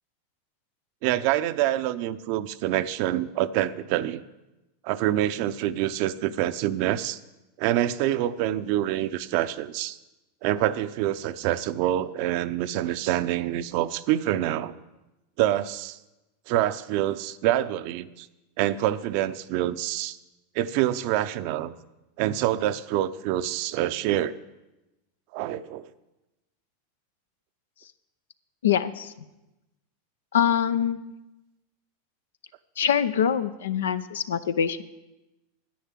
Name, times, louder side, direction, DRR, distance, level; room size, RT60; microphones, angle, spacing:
voice 1, 1.0-4.2 4.8-7.2 7.6-10.0 10.4-14.8 15.4-16.0 16.5-18.3 18.6-20.2 20.5-21.7 22.2-24.3 25.3-25.9, right 13 dB, 60° right, 13 dB, 0.6 m, -26 dB
voice 2, 28.6-29.1 30.3-31.1 32.8-34.8, left 8 dB, 85° left, 13 dB, 0.7 m, -24 dB
10.5 x 9.3 x 7.5 m, 1.0 s
hypercardioid pair, 105°, 0 cm